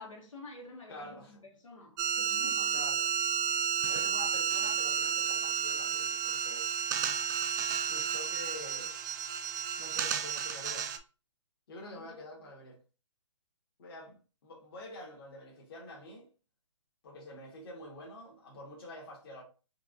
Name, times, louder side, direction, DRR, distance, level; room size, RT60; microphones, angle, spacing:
voice 1, 0.0-2.8 11.8-12.2, left 2 dB, 85° left, 1.8 m, -49 dB
voice 2, 0.9-1.4 2.7-3.1 3.9-7.3 7.8-8.9 9.8-10.9 11.7-12.8 13.8-16.3 17.0-19.4, left 1 dB, 45° left, 1.7 m, -47 dB
sound 1, 2.0-11.0, right 8 dB, 40° right, 0.4 m, -32 dB
4.7 x 2.7 x 2.5 m
hypercardioid pair, 150°, 16 cm